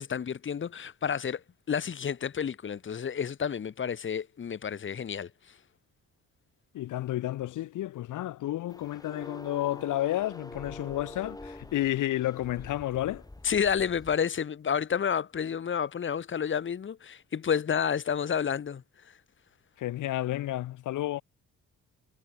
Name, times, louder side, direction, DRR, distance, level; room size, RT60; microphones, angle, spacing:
voice 1, 0.0-5.6 13.4-19.1, left 7 dB, 40° left, 1.6 m, -30 dB
voice 2, 6.7-13.2 19.8-21.2, left 14 dB, 85° left, 7.9 m, -31 dB
sound 1, 8.7-14.2, left 2 dB, 10° left, 5.6 m, -46 dB
cardioid pair, 90°, 30 cm